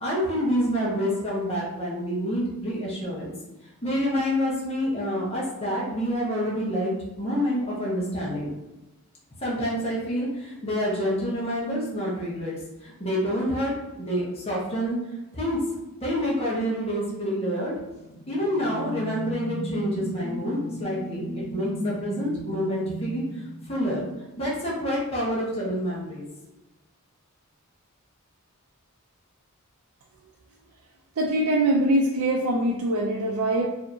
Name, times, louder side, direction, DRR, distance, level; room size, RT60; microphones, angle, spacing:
voice 1, 0.0-3.3 3.8-8.5 9.4-12.5 12.8-15.0 15.3-15.6 16.0-17.7 18.3-23.2 23.7-24.0 24.4-26.3, equal, 25° left, -6 dB, 1.1 m, -27 dB
sound 1, 17.9-24.3, equal, 30° right, 0.8 m, -35 dB
voice 2, 31.2-33.7, right 1 dB, 70° right, -1 dB, 0.5 m, -23 dB
4.8 x 2.8 x 2.7 m, 1.0 s
head